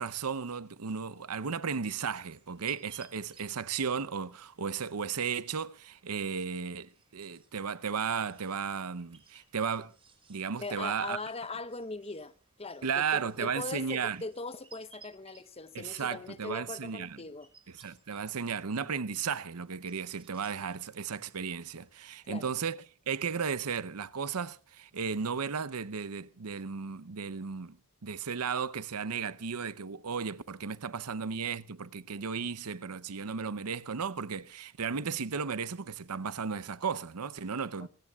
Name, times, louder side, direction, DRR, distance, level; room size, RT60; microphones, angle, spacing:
voice 1, 0.0-9.9 10.3-11.2 12.8-14.2 15.7-17.2 17.8-22.8 23.1-27.8 28.0-37.9, right 6 dB, 85° right, 0.8 m, -34 dB
sound 1, 2.2-22.1, right 5 dB, 25° right, 5.0 m, -63 dB
voice 2, 10.6-17.5 22.2-22.6, left 3 dB, 25° left, 1.0 m, -40 dB
25.5 x 17.0 x 2.4 m
head